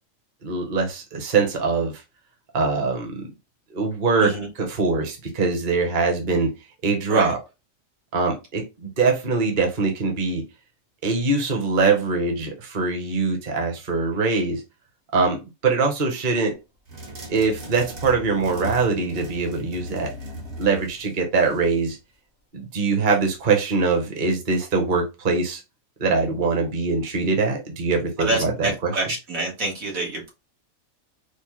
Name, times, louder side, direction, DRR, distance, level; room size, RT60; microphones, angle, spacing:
voice 1, 0.4-1.9 2.5-3.3 3.7-6.5 6.8-7.4 8.1-10.4 11.0-14.6 15.1-16.6 17.3-20.1 20.6-22.0 22.5-25.6 26.0-29.0, right 4 dB, 40° right, 0.9 m, -23 dB
sound 1, 16.9-21.9, right 1 dB, 55° right, 1.4 m, -38 dB
voice 2, 28.2-30.3, right 2 dB, 85° right, 1.7 m, -27 dB
4.6 x 2.0 x 3.0 m
omnidirectional pair, 1.4 m